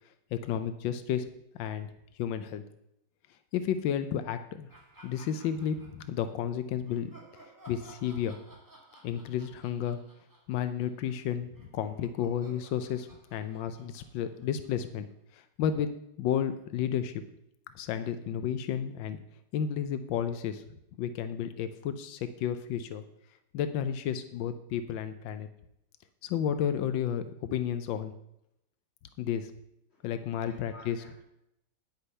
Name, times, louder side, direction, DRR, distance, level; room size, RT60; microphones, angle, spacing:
voice 1, 0.3-1.2 1.6-1.9 2.2-2.6 3.5-4.7 5.0-7.1 7.7-8.4 9.0-10.0 10.5-15.1 15.3-15.9 16.2-17.1 17.7-19.2 19.5-20.6 21.0-23.0 23.5-25.5 26.2-28.1 29.2-29.5 30.0-31.0, left 9 dB, 90° left, 10 dB, 1.4 m, -32 dB
sound 1, 4.7-6.3 6.8-15.1, right 1 dB, 10° right, 1.6 m, -56 dB
voice 2, 29.9-31.2, left 2 dB, 35° left, -2 dB, 2.7 m, -55 dB
9.8 x 6.7 x 5.4 m, 0.79 s
omnidirectional pair, 2.0 m